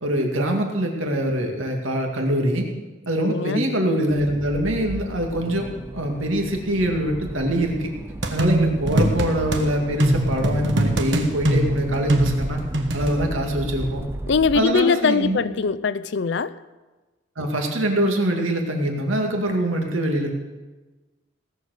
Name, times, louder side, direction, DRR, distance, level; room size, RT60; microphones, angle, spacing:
voice 1, 0.0-2.7 3.1-7.9 8.3-12.6 12.9-14.0 14.5-15.4 17.4-20.3, right 1 dB, 85° right, 2 dB, 2.1 m, -23 dB
voice 2, 3.3-3.6 14.3-16.5, left 5 dB, 60° left, 17 dB, 0.4 m, -21 dB
Accelerating revving vroom, 4.1-14.6, right 1 dB, 10° right, 0.3 m, -34 dB
sound 1, 8.2-9.6 10.0-13.1, right 1 dB, 65° right, 1.3 m, -22 dB
17.5 x 7.0 x 6.5 m, 1.2 s
head